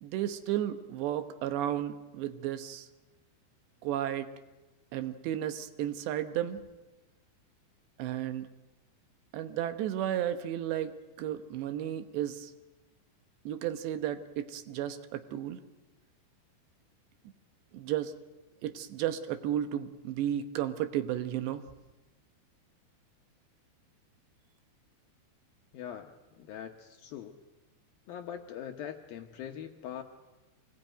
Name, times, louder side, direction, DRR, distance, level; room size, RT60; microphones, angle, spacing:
voice 1, 0.0-2.9 3.8-4.3 4.9-6.6 8.0-8.5 9.3-12.5 13.5-15.6 17.7-18.1 18.6-21.7, right 11 dB, 75° right, 10 dB, 3.1 m, -33 dB
voice 2, 25.7-27.4 28.1-30.0, left 9 dB, 70° left, 4 dB, 2.3 m, -42 dB
25.0 x 19.5 x 9.0 m, 1.1 s
omnidirectional pair, 5.2 m